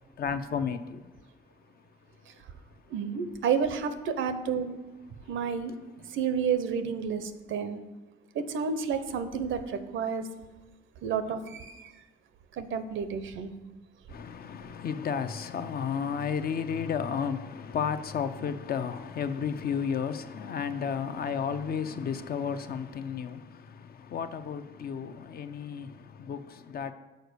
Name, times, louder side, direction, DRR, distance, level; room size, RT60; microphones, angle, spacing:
voice 1, 0.2-1.0 14.1-26.9, left 7 dB, 50° left, 0.5 m, -33 dB
voice 2, 2.9-4.8 5.3-5.7 6.1-7.8 8.3-10.3 11.0-11.9 12.5-13.5, right 6 dB, 75° right, 0.7 m, -30 dB
6.6 x 4.5 x 6.6 m
cardioid pair, 90°, 20 cm